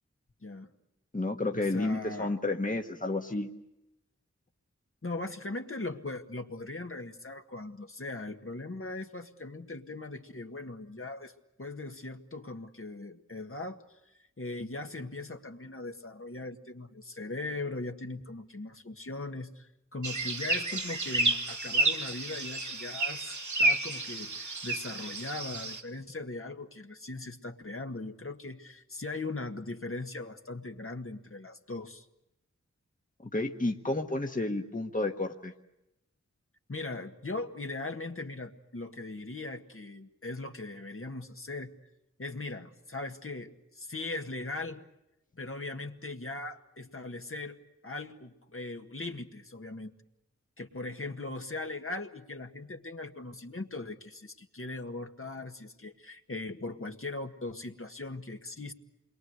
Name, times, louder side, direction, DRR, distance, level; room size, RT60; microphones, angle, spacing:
voice 1, 0.4-0.7 1.5-2.4 5.0-11.3 11.6-13.8 14.4-32.1 36.7-41.7 42.2-44.9 45.3-49.9 50.6-58.7, left 2 dB, 50° left, 4 dB, 1.8 m, -39 dB
voice 2, 1.1-3.5 33.3-35.5, left 2 dB, 30° left, 3 dB, 1.5 m, -31 dB
sound 1, 20.0-25.8, right 2 dB, 80° right, 2.4 m, -30 dB
28.0 x 22.5 x 8.0 m, 0.89 s
wide cardioid pair, 55°, 29 cm